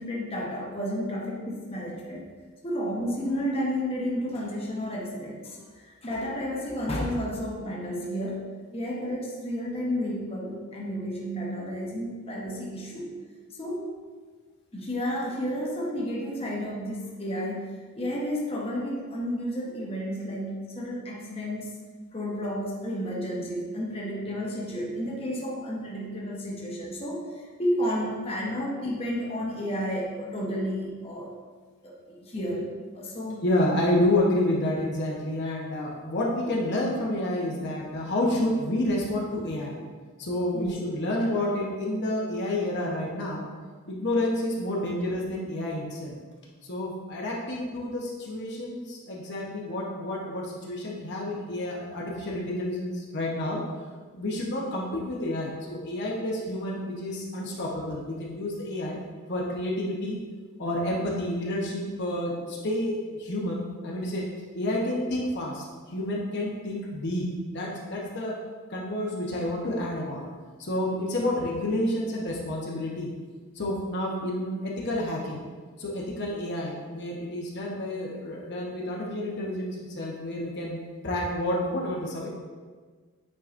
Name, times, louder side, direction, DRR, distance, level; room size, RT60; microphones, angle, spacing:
voice 1, 0.0-2.3 2.6-13.1 13.6-13.9 14.7-21.7 22.1-31.3 31.8-33.4 40.5-40.8, equal, 25° left, -4 dB, 1.0 m, -32 dB
voice 2, 33.4-39.8 40.2-43.5 43.9-46.1 46.6-53.6 54.1-59.0 59.3-60.2 60.6-64.3 64.5-65.6 65.9-68.4 68.7-70.2 70.6-73.1 73.5-75.4 75.8-80.8 81.0-82.3, left 1 dB, 55° left, -3 dB, 1.0 m, -29 dB
8.6 x 4.8 x 2.6 m, 1.5 s
head